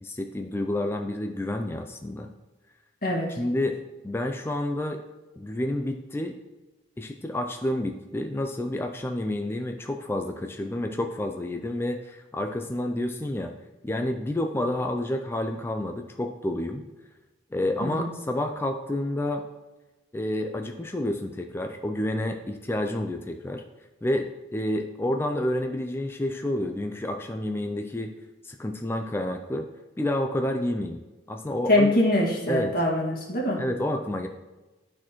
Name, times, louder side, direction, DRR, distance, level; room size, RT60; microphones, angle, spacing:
voice 1, 0.0-2.3 3.3-3.8 4.0-5.0 5.4-6.4 7.0-13.5 13.8-16.8 17.5-19.4 20.1-23.6 24.0-28.1 28.4-29.7 30.0-31.0 31.3-31.9 32.5-32.8 33.6-34.3, left 1 dB, 15° left, 4 dB, 0.3 m, -29 dB
voice 2, 31.7-33.6, left 1 dB, 55° left, -4 dB, 1.8 m, -23 dB
12.0 x 4.2 x 3.0 m, 1.1 s
head